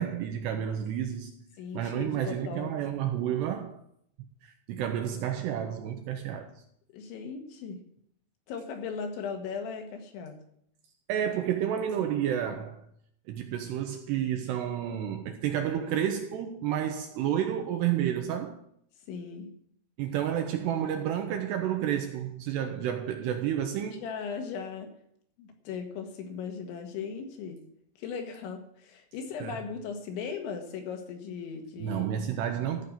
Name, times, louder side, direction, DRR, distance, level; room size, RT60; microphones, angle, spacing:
voice 1, 0.0-1.3 1.7-3.8 4.4-6.5 11.1-12.8 13.3-18.6 20.0-24.0 29.4-29.6 31.8-32.8, right 10 dB, 80° right, 2.5 m, -30 dB
voice 2, 1.6-2.7 6.9-7.8 8.5-10.4 12.0-12.1 19.1-19.5 24.0-24.9 25.4-27.6 28.0-32.1, left 6 dB, 75° left, 3.7 m, -38 dB
14.0 x 5.4 x 9.1 m
omnidirectional pair, 5.6 m